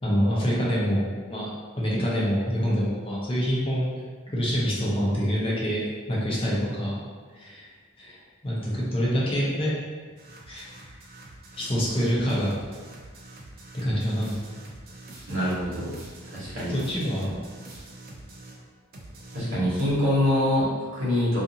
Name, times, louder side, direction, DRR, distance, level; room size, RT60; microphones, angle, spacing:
voice 1, 0.0-1.5 1.8-3.9 4.3-7.0 7.3-7.7 8.0-9.8 10.5-10.6 11.5-12.6 13.7-14.3 16.7-17.3, equal, 25° left, -5 dB, 0.6 m, -26 dB
sound 1, 10.2-18.6 18.9-20.0, right 2 dB, 45° right, 0.4 m, -45 dB
voice 2, 15.3-16.0 16.3-16.8 19.3-21.4, left 1 dB, 60° right, -9 dB, 1.0 m, -25 dB
2.5 x 2.5 x 2.7 m, 1.5 s
head